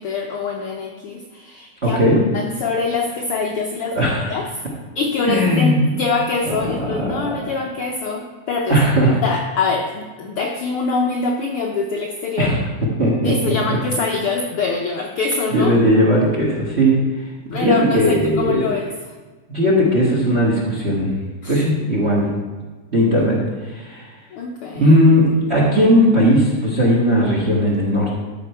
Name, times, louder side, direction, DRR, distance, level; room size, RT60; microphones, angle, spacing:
voice 1, 0.0-4.5 4.9-8.8 9.2-12.5 13.2-15.7 17.5-18.9 21.4-21.6 24.3-25.0, left 4 dB, 75° left, 1 dB, 1.3 m, -24 dB
voice 2, 1.8-2.2 3.9-4.3 5.2-5.8 6.4-7.5 8.7-9.2 12.4-12.6 13.0-13.8 15.5-17.0 17.5-18.7 19.5-21.1 21.5-22.3 22.9-23.4 23.7-24.1 24.7-28.1, equal, 30° right, -3 dB, 1.3 m, -17 dB
13.0 x 5.3 x 4.5 m, 1.4 s
omnidirectional pair, 3.3 m